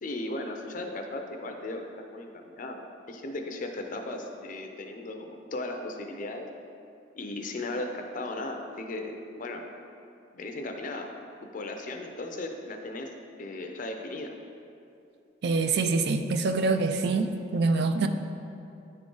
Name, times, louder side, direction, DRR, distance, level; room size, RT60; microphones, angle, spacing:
voice 1, 0.0-6.5 7.1-9.6 10.3-11.1 11.5-13.1 13.4-14.3, left 2 dB, 45° left, 4 dB, 0.5 m, -36 dB
voice 2, 15.4-18.1, right 3 dB, 55° right, 7 dB, 0.4 m, -25 dB
9.5 x 3.7 x 3.8 m, 2.7 s
head